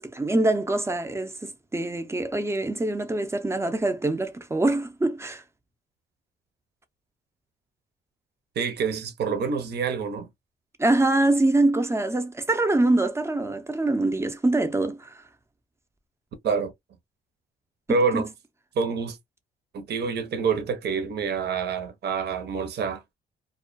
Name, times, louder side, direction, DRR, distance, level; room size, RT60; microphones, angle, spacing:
voice 1, 0.0-5.4 10.8-15.2 18.1-18.2, right 2 dB, 15° right, 0.5 m, -24 dB
voice 2, 8.6-10.3 16.4-16.7 17.9-18.3 18.8-19.2 19.7-23.0, right 5 dB, 55° right, 0.7 m, -27 dB
2.3 x 2.2 x 2.3 m
cardioid pair, 90°, 20 cm